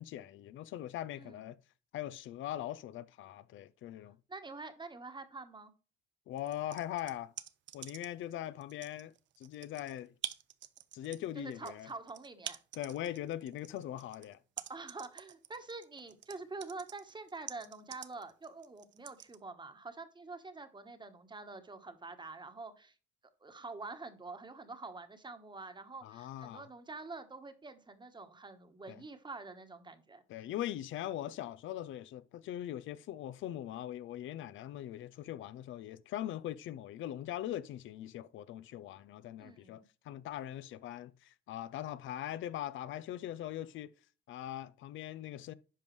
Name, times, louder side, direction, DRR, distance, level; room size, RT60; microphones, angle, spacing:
voice 1, 0.0-1.6 1.9-4.2 6.3-7.3 7.7-10.1 10.9-11.9 12.7-14.4 26.0-26.7 28.9-29.0 30.3-43.9 44.3-45.5, left 12 dB, 75° left, 0.5 m, -41 dB
voice 2, 1.2-1.5 4.3-5.7 11.3-12.6 14.7-22.9 23.4-30.2 39.4-39.9, right 3 dB, 25° right, 1.2 m, -46 dB
sound 1, 6.4-8.2 8.6-19.4, right 11 dB, 65° right, 0.6 m, -46 dB
10.5 x 5.3 x 3.1 m
cardioid pair, 90°, 20 cm